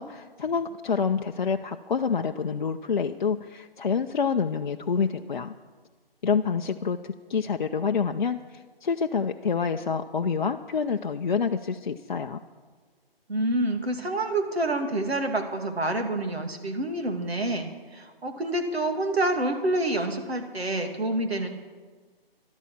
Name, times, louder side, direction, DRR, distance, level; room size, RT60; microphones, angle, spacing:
voice 1, 0.0-5.5 6.2-12.4, left 6 dB, 50° left, 4 dB, 0.5 m, -27 dB
voice 2, 13.3-21.5, right 1 dB, 90° right, 5 dB, 2.3 m, -27 dB
13.0 x 11.5 x 5.8 m, 1.4 s
hypercardioid pair, 165°, 30 cm